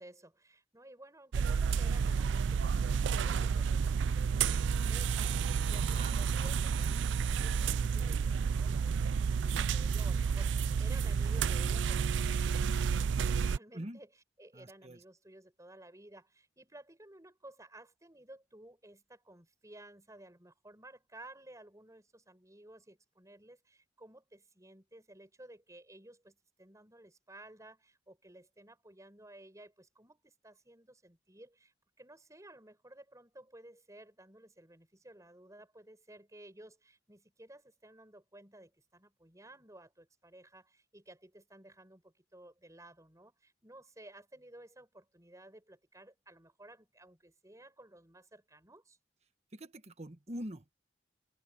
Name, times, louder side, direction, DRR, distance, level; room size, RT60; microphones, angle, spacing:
voice 1, 0.0-14.1 14.4-49.0, right 1 dB, 20° right, 6.4 m, -55 dB
sound 1, 1.3-13.6, right 6 dB, 75° right, 0.4 m, -30 dB
voice 2, 14.5-15.0 49.5-50.7, right 1 dB, 35° right, 1.5 m, -44 dB
head